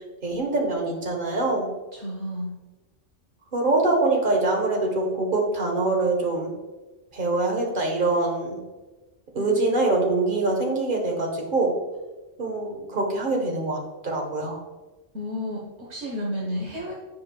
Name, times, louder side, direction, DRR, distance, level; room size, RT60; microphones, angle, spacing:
voice 1, 0.2-1.7 3.5-6.5 7.1-8.6 9.3-11.7 12.4-13.8 14.0-14.6, right 2 dB, 45° right, 0 dB, 1.4 m, -24 dB
voice 2, 1.9-2.5 9.4-9.9 15.1-16.9, left 1 dB, 70° right, -3 dB, 1.3 m, -32 dB
10.0 x 4.9 x 2.3 m, 1.2 s
omnidirectional pair, 1.2 m